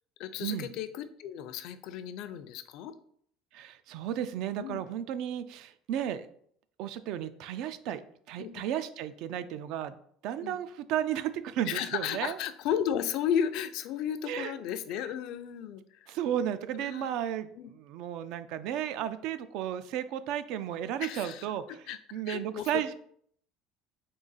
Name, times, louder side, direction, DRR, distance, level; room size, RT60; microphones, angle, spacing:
voice 1, 0.2-2.9 4.6-4.8 8.4-8.5 10.4-10.6 11.7-16.2 16.8-17.2 17.6-17.7 21.0-22.8, left 9 dB, 60° left, 11 dB, 0.4 m, -34 dB
voice 2, 3.5-6.3 6.8-8.0 8.3-9.9 10.2-12.4 14.2-14.5 16.1-22.9, right 10 dB, 65° right, 12 dB, 0.3 m, -34 dB
3.8 x 2.9 x 4.0 m, 0.63 s
cardioid pair, 145°, 0 cm